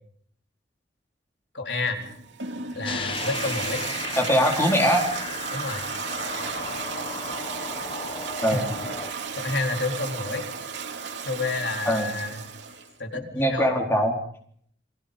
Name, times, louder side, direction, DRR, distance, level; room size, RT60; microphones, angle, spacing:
voice 1, 1.5-2.0 2.7-3.9 5.5-5.8 8.5-8.6 9.1-10.5 11.2-12.4 13.0-13.8, left 3 dB, 70° left, 4 dB, 4.1 m, -29 dB
Toilet flush, 1.9-12.9, right 5 dB, 75° right, 2.5 m, -34 dB
sound 1, 2.8-9.1, left 4 dB, 30° left, 1.4 m, -35 dB
voice 2, 4.2-5.1 8.4-8.6 11.9-12.1 13.3-14.1, equal, 15° left, 2 dB, 4.2 m, -21 dB
29.5 x 22.5 x 5.3 m, 0.63 s
head